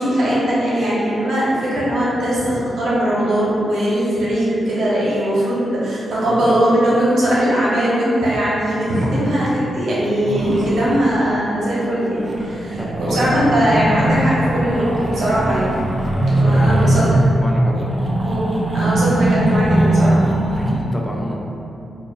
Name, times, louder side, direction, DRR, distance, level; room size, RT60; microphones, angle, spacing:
voice 1, 0.0-15.7 16.3-17.2 18.2-18.4 18.7-20.2, right 1 dB, 75° right, -8 dB, 1.1 m, -19 dB
sound 1, 10.0-11.1 12.1-20.7, right 1 dB, 35° right, 0.5 m, -20 dB
voice 2, 12.8-13.5 16.3-18.0 20.6-21.4, equal, 10° left, -2 dB, 0.5 m, -29 dB
4.7 x 2.6 x 2.5 m, 2.7 s
cardioid pair, 60°, 0 cm